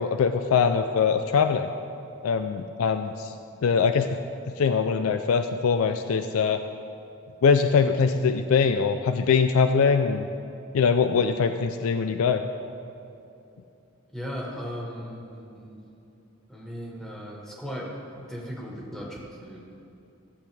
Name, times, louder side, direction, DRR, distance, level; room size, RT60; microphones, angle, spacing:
voice 1, 0.0-1.7 2.2-3.3 3.6-4.2 4.6-6.6 7.4-10.3 10.7-12.4, left 5 dB, 90° left, 8 dB, 0.4 m, -22 dB
voice 2, 14.1-15.8 16.5-17.9 18.3-19.6, equal, 5° left, -3 dB, 1.5 m, -37 dB
15.0 x 7.8 x 3.4 m, 2.7 s
head